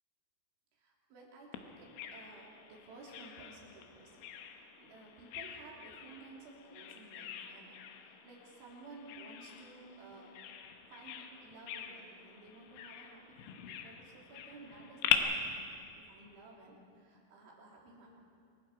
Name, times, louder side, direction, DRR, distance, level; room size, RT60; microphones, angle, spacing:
voice 1, 0.7-4.3 4.5-10.4 10.9-18.1, right 3 dB, 90° right, -2 dB, 5.6 m, -55 dB
Bird vocalization bird call bird song, 1.5-15.2, left 11 dB, 85° left, 3.6 m, -42 dB
27.5 x 21.0 x 4.9 m, 2.4 s
omnidirectional pair, 5.3 m